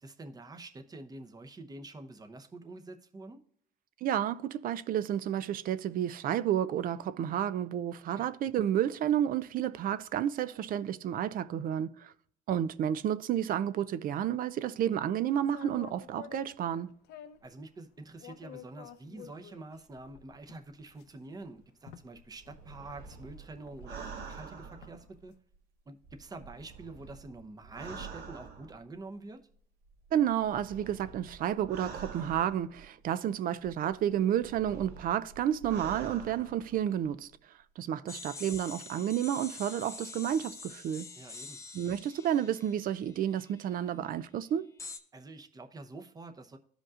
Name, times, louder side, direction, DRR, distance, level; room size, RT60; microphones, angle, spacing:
voice 1, 0.0-3.4 8.1-8.3 17.4-25.3 25.9-29.4 38.0-38.2 41.2-41.6 45.1-46.6, right 2 dB, 20° right, 0.8 m, -47 dB
voice 2, 4.0-12.1 12.5-16.9 30.1-37.3 37.8-41.1 41.7-44.7, right 10 dB, 55° right, 0.5 m, -31 dB
sound 1, 15.4-17.5 18.2-25.2, left 8 dB, 80° left, 0.7 m, -51 dB
sound 2, 22.3-25.5 26.0-29.0 29.9-33.1 33.6-37.1 37.3-37.4, right 5 dB, 80° right, 1.5 m, -47 dB
sound 3, 38.1-43.8 44.8-45.0, left 4 dB, 15° left, 0.7 m, -46 dB
13.5 x 5.2 x 2.4 m
cardioid pair, 110°, 17 cm